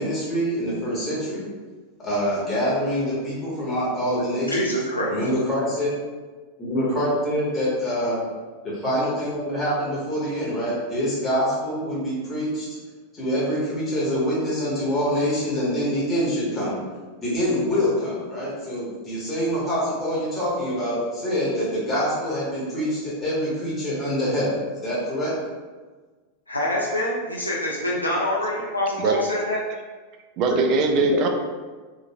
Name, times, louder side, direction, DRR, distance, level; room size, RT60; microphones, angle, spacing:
voice 1, 0.0-1.5 2.0-4.6 5.1-5.9 6.6-8.2 8.6-12.7 13.1-16.8 17.2-25.3 31.1-31.2, equal, 20° left, -7 dB, 1.0 m, -25 dB
voice 2, 4.5-5.1 26.5-29.6, left 1 dB, 85° left, -4 dB, 0.4 m, -25 dB
voice 3, 30.4-31.3, right 3 dB, 40° right, 4 dB, 0.4 m, -21 dB
3.0 x 2.4 x 2.2 m, 1.4 s
figure-of-eight pair, 90°, 0 cm